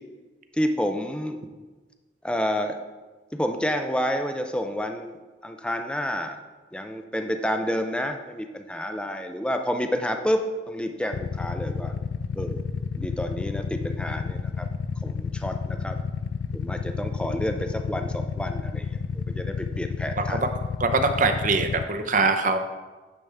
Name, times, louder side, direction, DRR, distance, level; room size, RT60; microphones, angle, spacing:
voice 1, 0.5-1.4 2.2-2.8 3.3-5.2 5.4-6.4 6.7-11.9 12.3-12.6 12.9-14.7 15.0-16.0 16.5-19.0 19.3-20.4, equal, 5° left, 6 dB, 0.4 m, -29 dB
Motorcycle / Idling, 11.1-21.8, left 5 dB, 75° left, 0.3 m, -31 dB
voice 2, 20.8-22.6, right 3 dB, 45° right, 7 dB, 0.7 m, -23 dB
9.6 x 6.9 x 3.4 m, 1.3 s
head